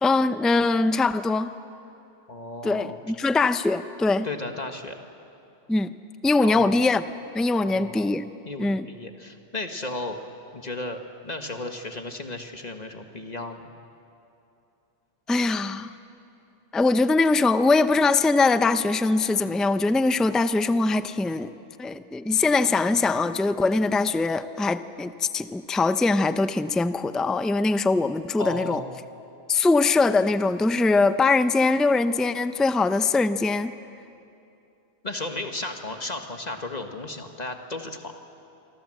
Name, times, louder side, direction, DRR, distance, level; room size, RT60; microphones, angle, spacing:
voice 1, 0.0-1.5 2.6-4.3 5.7-5.9 6.2-7.0 7.3-8.3 8.6-8.9 15.3-15.9 16.7-21.5 21.8-28.8 29.5-33.7, left 3 dB, ahead, 11 dB, 0.4 m, -22 dB
voice 2, 2.3-3.0 4.2-5.0 6.4-6.7 7.5-8.1 8.4-10.2 10.5-13.6 28.4-29.0 35.0-38.1, left 2 dB, 35° left, 5 dB, 1.6 m, -34 dB
27.0 x 25.0 x 7.7 m, 2.7 s
omnidirectional pair, 1.2 m